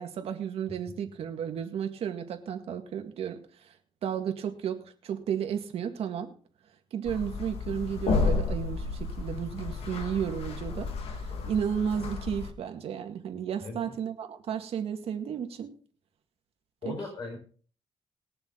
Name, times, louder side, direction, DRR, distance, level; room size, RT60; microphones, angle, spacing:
voice 1, 0.0-3.7 4.0-6.3 6.9-15.7 16.8-17.0, right 8 dB, 80° right, 6 dB, 2.0 m, -33 dB
sound 1, 7.0-12.5, left 4 dB, 80° left, 2.0 m, -32 dB
voice 2, 13.6-14.0 16.8-17.4, left 3 dB, 45° left, 1 dB, 4.9 m, -37 dB
21.0 x 7.0 x 3.9 m, 0.42 s
cardioid pair, 125°, 10 cm